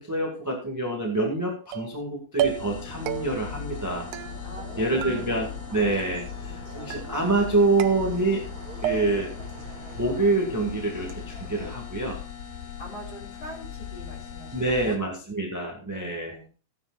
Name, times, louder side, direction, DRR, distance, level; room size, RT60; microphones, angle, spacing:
voice 1, 0.0-4.1 4.8-8.4 8.8-9.3 10.0-12.2 14.5-16.4, right 2 dB, 5° right, 0 dB, 1.5 m, -26 dB
sound 1, 1.7-2.1 2.4-2.8 3.1-3.6 4.1-4.7 5.0-5.7 6.0-6.5 6.9-7.4 7.8-8.5 8.8-9.4, right 11 dB, 80° right, 2.1 m, -33 dB
sound 2, 2.4-15.0, left 9 dB, 65° left, 2.4 m, -39 dB
sound 3, 2.6-11.7, right 4 dB, 35° right, 1.9 m, -44 dB
voice 2, 4.4-5.2 12.8-15.0 15.9-16.5, equal, 30° left, 0 dB, 3.3 m, -43 dB
16.0 x 9.8 x 2.5 m, 0.34 s
omnidirectional pair, 3.8 m